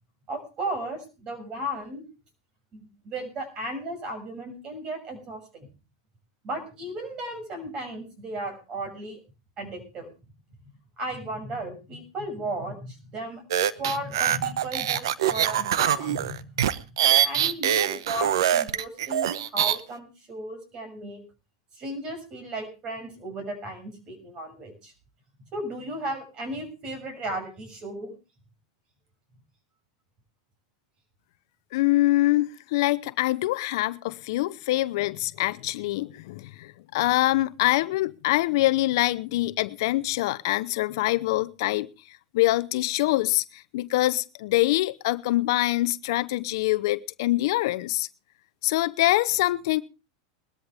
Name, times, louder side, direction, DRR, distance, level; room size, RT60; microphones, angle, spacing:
voice 1, 0.3-2.0 2.7-2.8 3.0-5.7 6.4-9.2 9.6-10.1 11.0-13.4 13.8-16.5 17.2-21.2 21.7-24.9 25.5-28.1, right 1 dB, 35° right, 6.5 m, -35 dB
sound 1, 13.5-19.8, right 10 dB, 80° right, 0.9 m, -24 dB
voice 2, 31.7-41.9 42.3-48.1 48.6-49.8, left 17 dB, 65° left, 0.6 m, -24 dB
20.0 x 13.0 x 3.4 m
hypercardioid pair, 120°, 2 cm